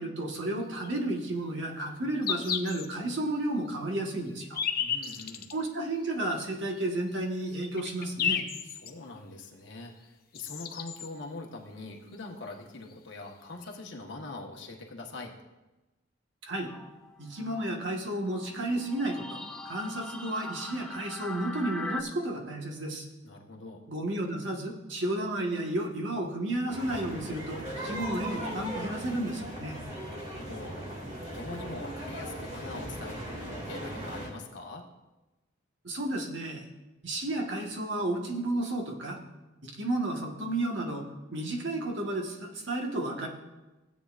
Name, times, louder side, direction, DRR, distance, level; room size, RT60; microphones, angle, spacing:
voice 1, 0.0-4.6 5.5-8.4 16.5-16.7 17.2-23.1 23.9-29.8 35.8-36.7 37.0-39.2 39.6-43.3, right 1 dB, 65° right, 0 dB, 1.5 m, -32 dB
sound 1, 0.8-0.9 1.8-1.9 2.2-2.9 3.4-3.5 4.3-5.5 6.4-6.5 7.1-7.2 7.5-8.9 10.0-10.1 10.3-11.1 12.5-12.6 12.8-12.9 13.6-13.7, left 7 dB, 45° left, 0.7 m, -32 dB
voice 2, 4.8-5.5 8.7-15.3 23.2-23.8 30.0-34.9, left 3 dB, 65° left, 0 dB, 1.3 m, -43 dB
sound 2, 16.6-22.0, left 2 dB, 5° left, 0.4 m, -42 dB
sound 3, 26.7-34.3, right 1 dB, 35° right, 2.0 m, -38 dB
16.5 x 8.3 x 2.5 m, 1.1 s
head